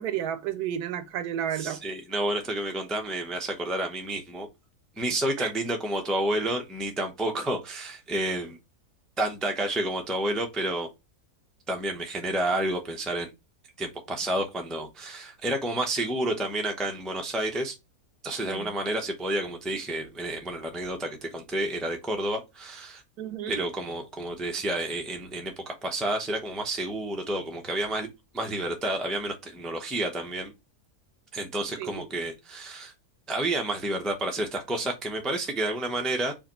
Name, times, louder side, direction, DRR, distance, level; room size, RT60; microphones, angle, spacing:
voice 1, 0.0-1.8 5.4-5.5 18.4-18.7 23.2-23.6 31.8-32.1, right 10 dB, 80° right, 1.2 m, -32 dB
voice 2, 1.5-4.5 5.0-8.6 9.2-10.9 11.7-13.3 13.8-17.8 18.2-23.0 23.5-28.1 28.3-30.5 31.3-32.9 33.3-36.3, right 1 dB, ahead, 0.4 m, -30 dB
4.8 x 2.5 x 4.2 m
omnidirectional pair, 1.6 m